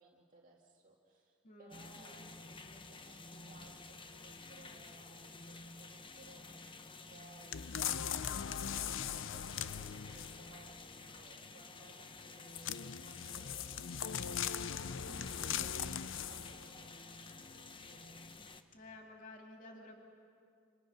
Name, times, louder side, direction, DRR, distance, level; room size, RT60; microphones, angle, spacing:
voice 1, 0.0-13.9 14.3-18.3, right 3 dB, 45° right, -2 dB, 2.0 m, -62 dB
voice 2, 1.4-2.3 15.1-15.6 18.7-20.0, left 1 dB, 45° left, 1 dB, 2.5 m, -53 dB
sound 1, 1.7-18.6, left 3 dB, 25° left, 1.0 m, -52 dB
sound 2, 7.5-10.5 12.5-16.7 17.3-17.4, left 9 dB, 75° left, 0.6 m, -39 dB
28.5 x 27.0 x 6.3 m, 2.5 s
head